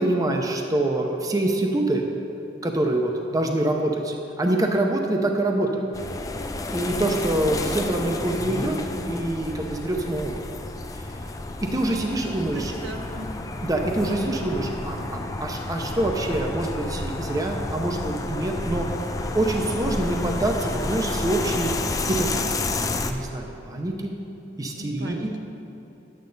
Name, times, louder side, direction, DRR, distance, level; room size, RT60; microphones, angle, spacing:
voice 1, 0.0-2.1 2.6-5.9 6.7-8.8 9.0-10.4 11.7-12.7 13.6-18.9 19.3-21.7 22.1-22.3 23.0-24.1 24.6-25.3, right 1 dB, 20° right, 2 dB, 0.6 m, -25 dB
sound 1, 5.9-23.1, left 2 dB, 20° left, 0.4 m, -30 dB
voice 2, 12.2-13.3 24.7-25.4, right 1 dB, 75° right, 2 dB, 0.9 m, -38 dB
10.5 x 8.6 x 4.0 m, 3.0 s
head